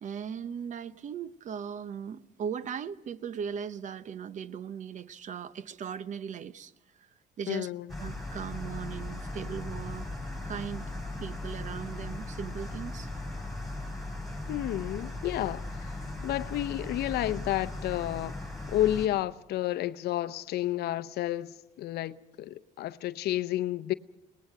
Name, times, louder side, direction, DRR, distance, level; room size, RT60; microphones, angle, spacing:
voice 1, 0.0-6.7 7.4-7.7 8.0-10.1 10.4-10.9 11.2-13.1, right 7 dB, 45° right, 0.8 m, -38 dB
voice 2, 7.5-7.9 14.5-18.4 18.7-23.9, left 14 dB, 70° left, 0.7 m, -31 dB
sound 1, 7.9-19.1, left 2 dB, ahead, 7.1 m, -38 dB
22.5 x 19.0 x 6.7 m
cardioid pair, 110°, 17 cm